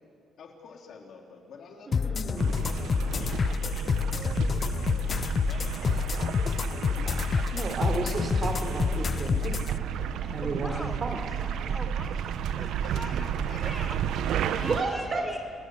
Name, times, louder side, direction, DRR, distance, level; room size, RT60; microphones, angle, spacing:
voice 1, 0.4-5.9 12.8-13.6 14.8-15.3, left 4 dB, 65° left, 1 dB, 4.0 m, -48 dB
sound 1, 1.9-9.7, left 6 dB, 40° left, 0.5 m, -28 dB
voice 2, 1.9-2.6 4.1-4.7 7.5-9.8 10.2-10.7 11.0-11.2 14.6-15.4, right 3 dB, 45° right, 6 dB, 3.9 m, -33 dB
sound 2, 2.4-14.8, right 8 dB, 80° right, 0.9 m, -32 dB
voice 3, 10.4-13.1 13.4-15.4, left 1 dB, 5° left, 6 dB, 1.2 m, -43 dB
29.5 x 19.0 x 6.8 m, 2.2 s
cardioid pair, 90°, 0 cm